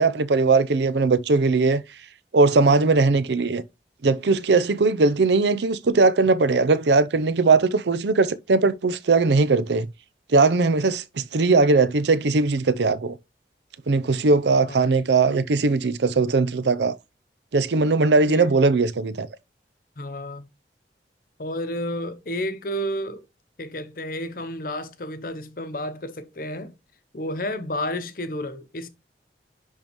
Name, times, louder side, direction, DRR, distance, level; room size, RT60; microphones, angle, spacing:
voice 1, 0.0-1.8 2.3-3.6 4.0-9.9 10.3-13.1 13.9-17.0 17.5-19.3, right 3 dB, 75° right, 0.6 m, -19 dB
voice 2, 18.2-18.5 20.0-20.5 21.4-23.2 23.6-26.7 27.1-28.9, equal, 50° left, 0.8 m, -31 dB
10.5 x 3.7 x 3.0 m
head